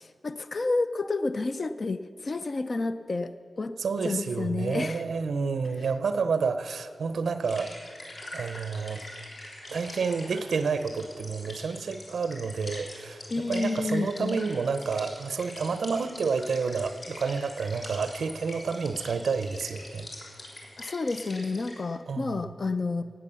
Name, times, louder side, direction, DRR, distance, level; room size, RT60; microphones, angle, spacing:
voice 1, 0.0-3.7 4.0-5.0 13.3-14.4 20.8-23.0, left 3 dB, 40° left, 11 dB, 0.4 m, -30 dB
voice 2, 3.8-7.7 8.3-9.0 9.7-20.1 22.1-22.6, right 5 dB, 85° right, 11 dB, 0.6 m, -29 dB
sound 1, 7.4-21.7, left 1 dB, 60° left, 3.4 m, -44 dB
17.0 x 9.1 x 6.8 m, 2.1 s
wide cardioid pair, 150°, 0 cm